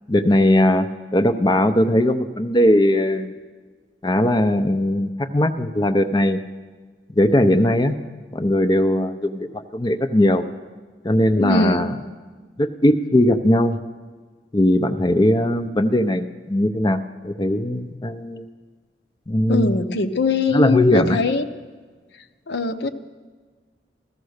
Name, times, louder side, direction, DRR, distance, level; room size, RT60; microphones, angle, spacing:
voice 1, 0.1-3.3 4.0-6.4 7.1-8.0 8.3-10.4 11.0-11.9 12.6-13.8 14.5-18.4 19.3-19.7 20.5-21.2, left 1 dB, 25° left, 8 dB, 0.6 m, -19 dB
voice 2, 11.4-11.9 19.5-21.4 22.5-22.9, left 3 dB, 70° left, 9 dB, 0.8 m, -22 dB
15.5 x 14.0 x 6.5 m, 1.4 s
head